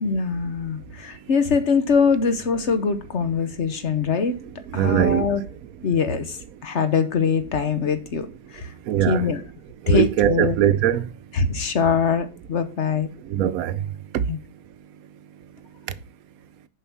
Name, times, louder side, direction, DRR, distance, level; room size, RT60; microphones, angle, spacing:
voice 1, 0.0-4.4 4.7-5.4 5.8-8.3 8.5-8.7 9.1-9.4 9.9-10.6 11.3-13.1 14.3-14.4, left 5 dB, 50° left, 1.2 m, -23 dB
voice 2, 4.7-5.3 8.9-9.3 9.8-11.1 13.3-13.8 14.1-14.2, right 11 dB, 70° right, 1.0 m, -21 dB
7.2 x 5.7 x 6.0 m
omnidirectional pair, 1.7 m